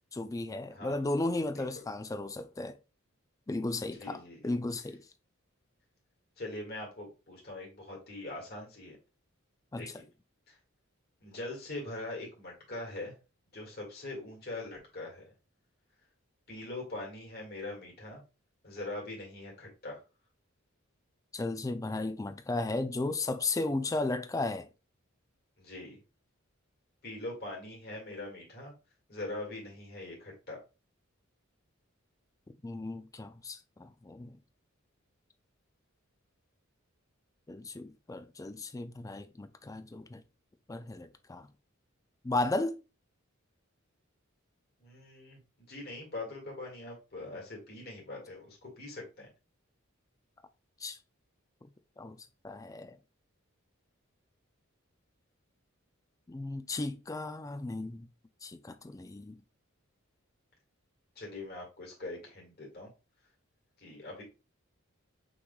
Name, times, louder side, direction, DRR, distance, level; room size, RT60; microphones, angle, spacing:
voice 1, 0.1-2.8 3.5-5.0 9.7-9.9 21.3-24.7 32.6-34.4 37.5-40.2 40.7-41.5 42.2-42.8 50.8-51.0 52.0-52.2 52.4-53.0 56.3-58.1 58.4-59.4, left 2 dB, 15° left, 0.4 m, -35 dB
voice 2, 0.7-1.1 1.6-1.7 3.7-4.5 6.4-9.0 9.7-10.0 10.5-10.6 11.2-13.1 13.5-15.2 16.5-18.2 18.6-20.0 25.6-26.0 27.0-28.7 29.1-30.6 44.8-49.3 61.2-62.9 63.8-64.2, left 2 dB, 50° left, 2.0 m, -42 dB
6.0 x 3.2 x 2.3 m
head